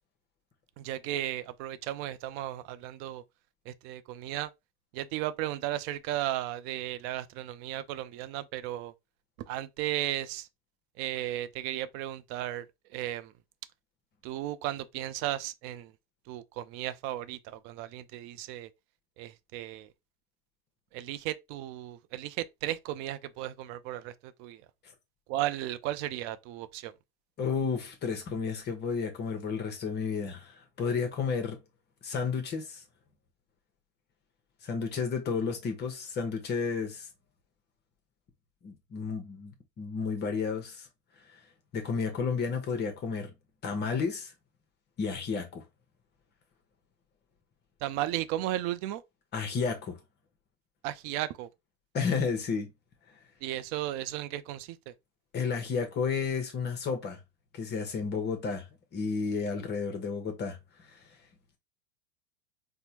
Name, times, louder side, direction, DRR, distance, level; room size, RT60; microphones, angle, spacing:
voice 1, 0.8-3.2 3.7-4.5 4.9-8.9 9.5-10.5 11.0-12.7 12.9-13.3 14.2-15.9 16.3-18.7 19.2-19.9 20.9-24.6 25.3-26.9 47.8-49.0 50.8-51.5 53.4-54.9, right 14 dB, 40° right, 0.4 m, -35 dB
voice 2, 27.4-31.6 32.0-32.8 34.6-37.1 38.6-39.5 39.8-40.9 41.3-41.4 41.7-43.3 43.6-44.3 45.0-45.6 49.3-50.0 51.9-52.7 55.3-57.2 57.5-58.7 58.9-60.6 60.9-61.0, left 5 dB, 30° left, 0.9 m, -32 dB
4.3 x 2.2 x 2.7 m
hypercardioid pair, 100°, 34 cm